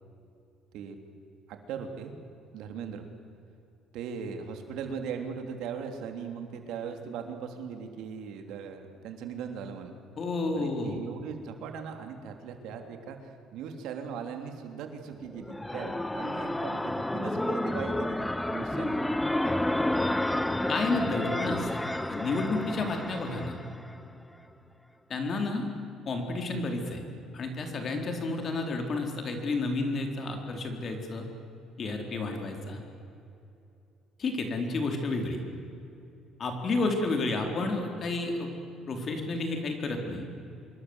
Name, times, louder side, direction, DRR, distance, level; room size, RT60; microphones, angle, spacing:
voice 1, 1.5-2.2 2.5-3.0 3.9-10.0 10.5-19.1, right 6 dB, 75° right, 5 dB, 3.4 m, -39 dB
voice 2, 10.2-11.0 20.7-21.8 22.1-23.6 25.1-25.7 26.0-27.0 27.3-31.3 31.8-32.8 34.2-35.4 36.4-38.5 38.9-40.3, left 3 dB, 35° left, 4 dB, 4.1 m, -31 dB
sound 1, 15.2-24.0, left 1 dB, 5° left, 0.8 m, -30 dB
26.5 x 22.5 x 8.2 m, 2.8 s
cardioid pair, 145°, 0 cm